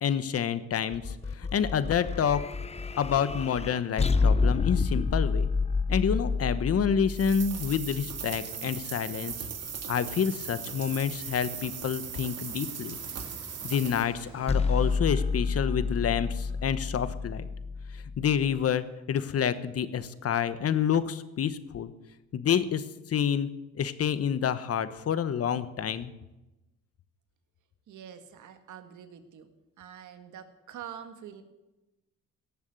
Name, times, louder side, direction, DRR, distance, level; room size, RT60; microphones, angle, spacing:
voice 1, 0.0-2.4 3.0-5.5 5.9-9.3 9.9-13.0 13.6-17.4 18.2-21.9 22.3-23.5 23.8-26.1, left 8 dB, 50° left, 13 dB, 1.1 m, -28 dB
sound 1, 0.9-8.2 14.5-18.6, left 4 dB, 20° left, 0.7 m, -29 dB
sound 2, 7.1-14.0, right 7 dB, 55° right, 2.2 m, -38 dB
City Street Ambience, 8.2-15.0, right 1 dB, 15° right, 5.0 m, -53 dB
voice 2, 27.9-29.5 29.8-31.4, right 9 dB, 75° right, 8 dB, 1.8 m, -45 dB
18.0 x 7.2 x 7.7 m, 1.0 s
cardioid pair, 90°, 30 cm